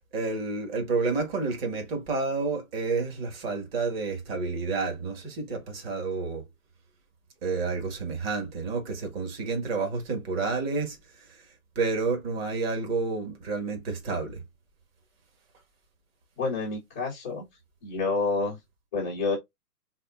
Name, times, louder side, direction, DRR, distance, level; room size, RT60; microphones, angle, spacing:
voice 1, 0.1-6.4 7.4-11.0 11.8-14.4, right 4 dB, 40° right, 1.8 m, -30 dB
voice 2, 16.4-17.4 17.8-18.6 18.9-19.4, left 4 dB, 10° left, 0.5 m, -28 dB
4.1 x 3.6 x 2.4 m
hypercardioid pair, 145°, 47 cm